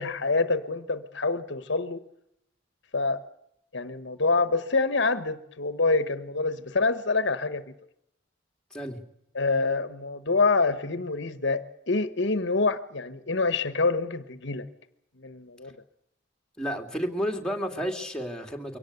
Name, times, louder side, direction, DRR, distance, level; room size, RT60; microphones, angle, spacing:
voice 1, 0.0-2.0 2.9-3.2 3.7-7.7 9.3-14.7 15.2-15.8, left 3 dB, 65° left, 12 dB, 1.3 m, -26 dB
voice 2, 16.6-18.8, equal, 5° left, 2 dB, 2.6 m, -31 dB
23.5 x 18.0 x 8.0 m, 0.77 s
head